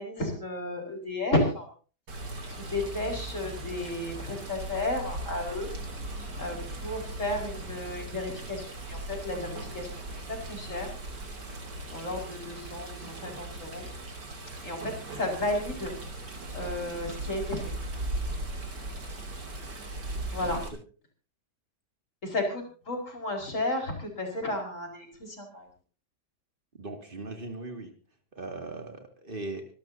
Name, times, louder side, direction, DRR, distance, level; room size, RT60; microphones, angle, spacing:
voice 1, 0.0-1.7 2.6-5.7 6.4-10.0 10.3-10.9 11.9-13.9 14.6-16.0 16.5-17.7 20.3-20.6 22.2-25.7, left 1 dB, 45° left, 1 dB, 5.2 m, -33 dB
Water, 2.1-20.7, right 2 dB, 90° right, 3.5 m, -38 dB
voice 2, 26.7-27.9 28.3-29.7, right 2 dB, 30° right, 4 dB, 2.5 m, -39 dB
25.5 x 12.5 x 2.8 m, 0.38 s
omnidirectional pair, 1.8 m